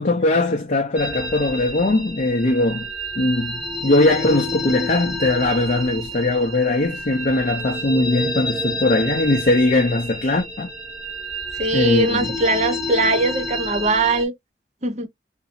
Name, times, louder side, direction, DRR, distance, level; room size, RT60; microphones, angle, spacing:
voice 1, 0.0-2.9 3.2-10.7 11.7-12.3, left 2 dB, 45° left, 0.6 m, -20 dB
sound 1, 1.0-14.2, equal, 5° right, 1.0 m, -29 dB
voice 2, 11.6-14.3 14.8-15.1, right 2 dB, 40° right, 0.7 m, -21 dB
2.8 x 2.6 x 2.5 m
head